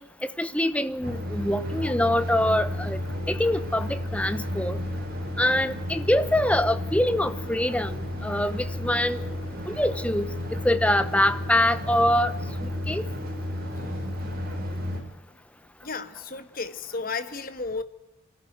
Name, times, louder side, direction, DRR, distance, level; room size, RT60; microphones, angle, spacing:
voice 1, 0.0-3.0 3.3-4.8 5.4-8.0 8.2-9.2 9.7-10.3 10.5-12.3 12.6-13.1, left 1 dB, 5° left, 0.9 m, -24 dB
sound 1, 1.0-15.0, left 1 dB, 45° right, 4.8 m, -32 dB
sound 2, 2.5-10.6, left 1 dB, 85° left, 3.5 m, -50 dB
voice 2, 13.6-14.4 15.8-17.8, left 4 dB, 45° left, 1.4 m, -34 dB
24.0 x 13.5 x 9.4 m
head